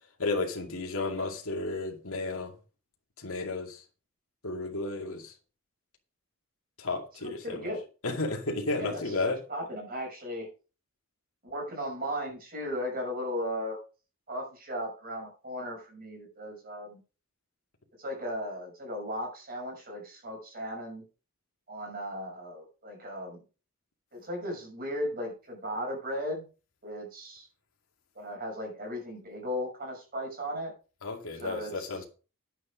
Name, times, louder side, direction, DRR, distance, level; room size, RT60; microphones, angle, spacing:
voice 1, 0.2-2.5 3.2-3.8 4.4-5.3 6.8-7.7 8.0-9.4 31.0-32.0, left 3 dB, 70° left, 2.4 m, -33 dB
voice 2, 7.2-7.8 8.8-9.1 9.5-10.5 11.5-13.8 14.3-17.0 18.0-21.0 21.7-23.4 24.1-26.4 26.8-27.5 28.1-30.7 31.4-32.0, equal, 40° right, 6.3 m, -36 dB
10.0 x 8.4 x 5.1 m
head